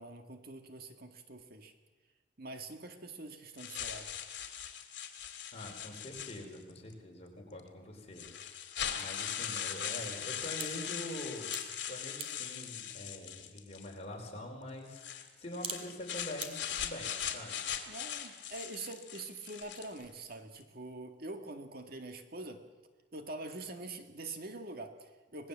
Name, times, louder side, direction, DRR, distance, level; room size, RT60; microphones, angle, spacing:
voice 1, 0.0-1.7 2.4-4.1 17.9-22.6 23.1-25.5, right 2 dB, 50° right, 6 dB, 1.9 m, -45 dB
sound 1, 3.6-6.8 7.6-7.7 8.2-13.9 14.9-20.0, left 9 dB, 60° left, 2.5 m, -40 dB
voice 2, 5.5-8.3 9.0-11.5 11.9-17.6, left 1 dB, 35° left, 1 dB, 5.1 m, -45 dB
sound 2, 7.1-16.5, right 5 dB, 30° right, 2.3 m, -51 dB
25.5 x 20.0 x 7.5 m, 1.2 s
head